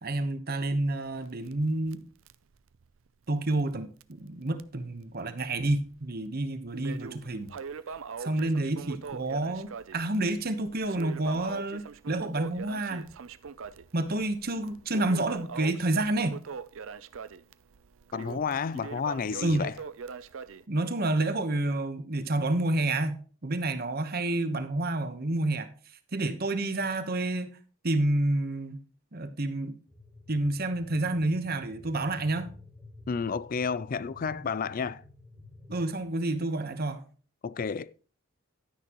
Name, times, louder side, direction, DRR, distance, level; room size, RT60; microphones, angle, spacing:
voice 1, 0.0-2.0 3.3-7.5 8.2-13.1 13.9-16.4 19.4-19.7 20.7-25.7 26.1-27.5 27.8-28.8 29.1-29.8 30.3-32.5 35.7-37.0, right 2 dB, 45° right, 1.1 m, -29 dB
Crackle, 1.1-3.8 4.0-4.1 4.6-4.7 5.4-6.0 6.4-20.6, right 5 dB, 60° right, 0.5 m, -42 dB
voice 2, 18.1-19.7 33.1-35.0 37.4-37.9, left 5 dB, 40° left, 0.3 m, -31 dB
sound 1, 29.9-36.0, left 2 dB, ahead, 2.8 m, -51 dB
11.5 x 9.8 x 3.0 m
head